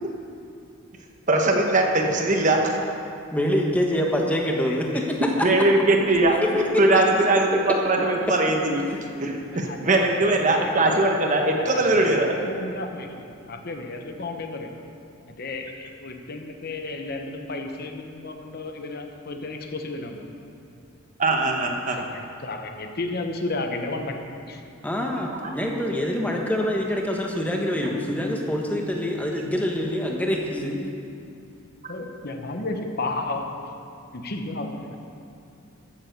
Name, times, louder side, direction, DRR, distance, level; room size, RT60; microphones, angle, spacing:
voice 1, 1.3-2.7 5.4-6.4 6.8-8.9 9.2-12.3 21.2-22.0 25.4-25.5, right 2 dB, 35° right, 2 dB, 1.1 m, -21 dB
voice 2, 3.3-5.5 6.4-6.8 7.7-7.8 24.8-30.8 31.0-31.1, left 1 dB, 5° left, 0 dB, 1.2 m, -25 dB
voice 3, 4.6-5.0 8.9-9.0 9.4-10.9 11.5-14.8 15.3-20.3 21.9-24.6 31.9-33.7 34.1-35.0, left 2 dB, 45° left, 4 dB, 0.9 m, -33 dB
14.5 x 7.2 x 6.7 m, 2.5 s
head